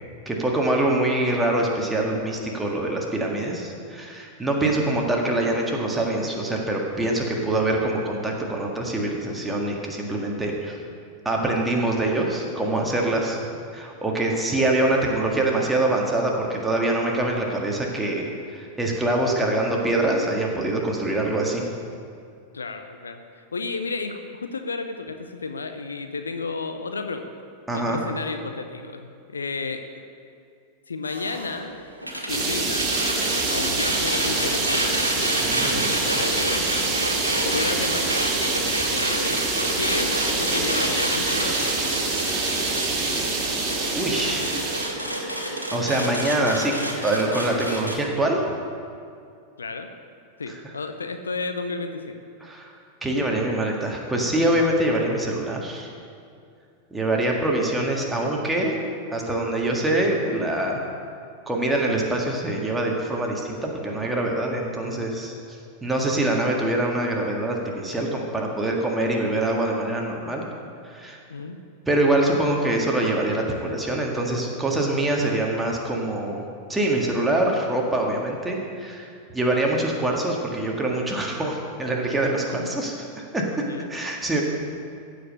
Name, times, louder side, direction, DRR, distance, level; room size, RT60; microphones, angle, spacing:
voice 1, 0.3-10.8 11.3-13.4 13.7-21.7 27.7-28.0 35.4-35.9 43.9-44.6 45.7-46.8 47.0-48.4 52.4-52.7 53.0-55.9 56.9-58.7 59.1-60.8 61.5-65.3 65.8-70.5 70.9-71.2 71.9-76.4 76.7-79.0 79.3-84.4, right 1 dB, 10° right, -1 dB, 1.8 m, -24 dB
voice 2, 22.5-27.3 27.7-30.0 30.9-31.8 32.3-32.9 33.5-35.0 35.6-36.7 37.4-38.2 38.9-39.5 39.7-41.7 49.6-49.9 50.4-52.2 64.8-65.1 66.1-66.3 71.3-71.6 75.3-75.5 82.5-82.7 83.6-83.9, left 4 dB, 75° left, 7 dB, 0.7 m, -32 dB
sound 1, 31.0-47.9, right 1 dB, 85° right, 1.7 m, -29 dB
sound 2, 32.3-44.9, right 3 dB, 30° right, 2.5 m, -26 dB
15.5 x 5.2 x 6.6 m, 2.4 s
figure-of-eight pair, 90°, 0 cm